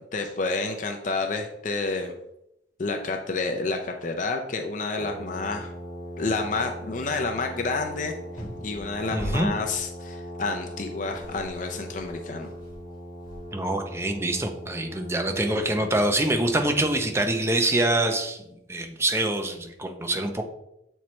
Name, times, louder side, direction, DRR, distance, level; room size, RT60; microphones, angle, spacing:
voice 1, 0.1-2.1 2.8-5.7 6.2-8.1 8.6-12.5, left 3 dB, 45° left, 4 dB, 0.5 m, -29 dB
Brass instrument, 5.0-17.2, equal, 40° right, 2.2 m, -40 dB
sound 1, 7.9-9.9 10.7-10.8 11.0-13.8, left 1 dB, 25° left, 1.6 m, -42 dB
voice 2, 9.1-9.5 13.5-18.4 18.7-20.4, right 1 dB, 15° right, 4 dB, 0.6 m, -25 dB
7.1 x 4.4 x 3.1 m, 0.83 s
head